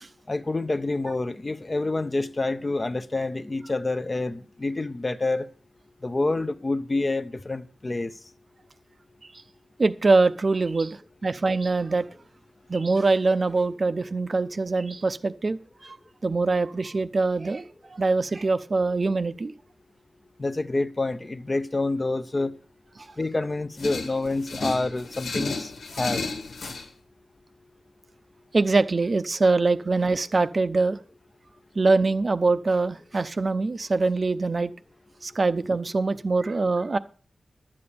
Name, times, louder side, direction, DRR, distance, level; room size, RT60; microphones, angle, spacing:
voice 1, 0.3-5.5 6.0-8.1 20.4-22.5 23.2-25.7 26.0-26.2, left 2 dB, 25° left, 0.6 m, -27 dB
voice 2, 9.8-12.1 12.7-16.0 16.2-17.6 17.9-19.5 23.0-23.1 28.5-31.0 31.8-34.7 35.2-37.0, right 3 dB, 40° right, 0.6 m, -23 dB
sound 1, 23.8-26.9, left 3 dB, 85° left, 1.7 m, -32 dB
11.0 x 8.7 x 6.9 m
wide cardioid pair, 120°, 0 cm